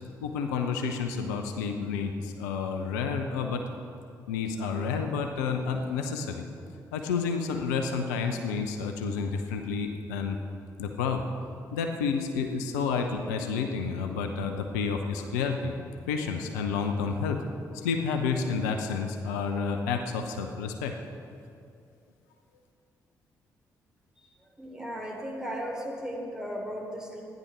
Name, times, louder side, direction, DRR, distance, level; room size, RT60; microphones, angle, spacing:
voice 1, 0.2-3.6 4.3-6.4 6.9-10.4 10.8-11.2 11.7-15.8 16.1-17.4 17.7-20.9, left 5 dB, 80° left, 5 dB, 0.8 m, -30 dB
voice 2, 24.6-27.2, equal, 5° right, -1 dB, 3.4 m, -36 dB
13.5 x 10.5 x 6.1 m, 2.5 s
figure-of-eight pair, 40°, 9 cm